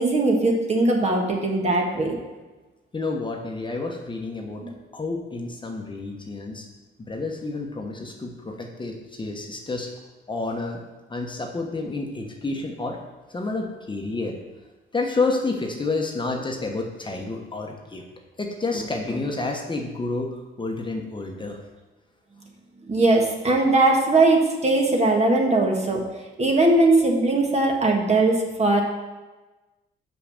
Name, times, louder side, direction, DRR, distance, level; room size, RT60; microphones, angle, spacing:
voice 1, 0.0-2.2 22.9-26.0 26.4-28.8, right 2 dB, 35° right, 1 dB, 1.6 m, -20 dB
voice 2, 2.9-4.6 4.9-6.7 7.0-9.9 10.3-10.8 11.1-13.0 13.3-14.4 14.9-18.0 18.4-21.6, left 3 dB, 25° left, 2 dB, 1.1 m, -29 dB
5.8 x 5.7 x 6.6 m, 1.2 s
cardioid pair, 90°, 20 cm